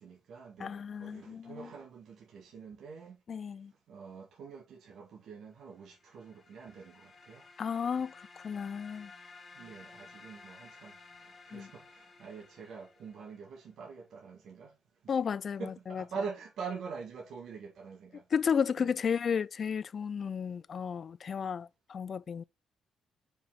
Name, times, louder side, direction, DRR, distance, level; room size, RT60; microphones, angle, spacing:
voice 1, 0.0-3.2 3.9-7.5 7.9-8.1 9.5-14.7 15.0-15.1 15.6-18.2 18.8-18.9, right 5 dB, 70° right, 1.6 m, -45 dB
voice 2, 0.6-1.7 3.3-3.7 7.6-9.1 11.5-11.7 15.1-16.0 18.3-22.4, left 7 dB, 50° left, 0.3 m, -33 dB
sound 1, 5.8-13.5, left 3 dB, 30° left, 1.9 m, -55 dB
5.1 x 4.9 x 3.9 m
cardioid pair, 90°, 0 cm